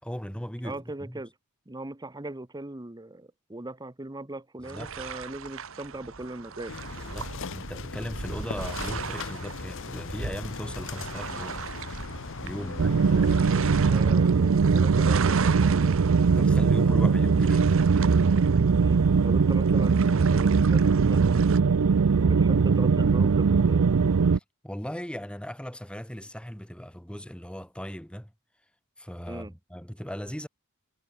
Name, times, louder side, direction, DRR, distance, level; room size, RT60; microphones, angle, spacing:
voice 1, 0.0-1.2 4.6-4.9 7.0-11.6 12.4-12.9 16.4-17.7 24.3-28.3 29.0-30.5, equal, 5° left, 2.8 m, -37 dB
voice 2, 0.6-1.3 1.7-6.7 8.5-8.6 12.5-12.8 13.1-13.5 13.9-16.0 18.8-21.5 22.2-23.8 29.3-29.5, right 2 dB, 20° right, 1.1 m, -39 dB
sound 1, 4.6-21.6, right 5 dB, 65° right, 1.4 m, -38 dB
sound 2, 6.7-13.9, left 4 dB, 65° left, 0.9 m, -39 dB
sound 3, 12.8-24.4, right 5 dB, 85° right, 0.5 m, -21 dB
head